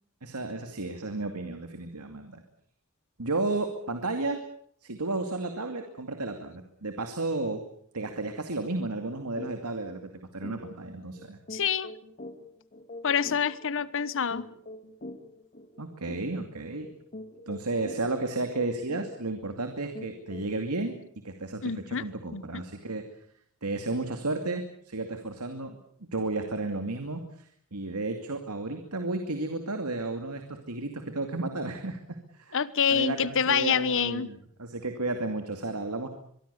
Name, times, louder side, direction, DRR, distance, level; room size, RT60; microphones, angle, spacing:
voice 1, 0.2-2.4 3.2-4.4 4.8-7.6 7.9-11.4 15.8-16.9 17.5-21.0 21.2-23.0 23.6-25.8 26.1-32.0 32.3-32.6 32.9-36.1, right 2 dB, 85° right, 6 dB, 2.5 m, -33 dB
sound 1, 9.4-9.6 9.9-10.0 10.4-20.7, left 1 dB, 40° left, 2.3 m, -45 dB
voice 2, 11.5-11.9 13.0-14.5 21.6-22.0 22.3-22.6 32.5-34.3, left 7 dB, 60° left, 17 dB, 1.1 m, -27 dB
23.5 x 23.5 x 7.0 m, 0.64 s
head